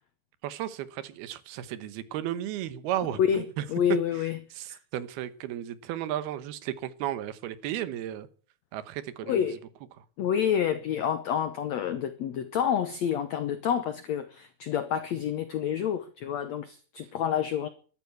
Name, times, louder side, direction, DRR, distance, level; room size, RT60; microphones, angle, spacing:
voice 1, 0.4-3.6 4.6-8.3 8.7-9.5, right 12 dB, 80° right, 3.0 m, -34 dB
voice 2, 3.2-4.4 4.7-4.8 9.2-9.6 10.2-17.7, left 8 dB, 80° left, 1.5 m, -28 dB
13.0 x 12.0 x 7.9 m
omnidirectional pair, 4.4 m